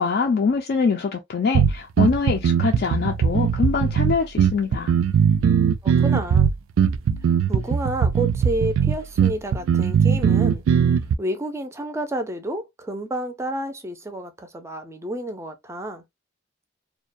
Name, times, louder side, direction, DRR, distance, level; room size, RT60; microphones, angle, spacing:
voice 1, 0.0-4.9, left 5 dB, 55° left, 0.4 m, -23 dB
sound 1, 1.5-11.1, right 7 dB, 85° right, 0.3 m, -19 dB
voice 2, 5.8-6.5 7.5-10.6 11.2-16.0, right 1 dB, 15° right, 0.4 m, -30 dB
2.3 x 2.2 x 2.5 m
head